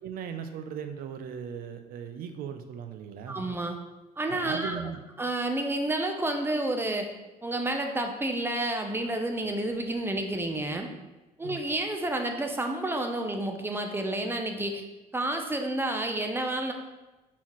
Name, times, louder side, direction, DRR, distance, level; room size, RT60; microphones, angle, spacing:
voice 1, 0.0-3.4 4.3-5.0 11.4-11.6, right 7 dB, 60° right, 7 dB, 0.5 m, -38 dB
voice 2, 3.3-3.8 4.2-4.8 5.2-7.1 7.4-10.9 11.4-14.8 15.1-16.7, right 1 dB, 15° right, 4 dB, 0.5 m, -30 dB
4.2 x 3.8 x 3.0 m, 1.1 s
cardioid pair, 95°, 16 cm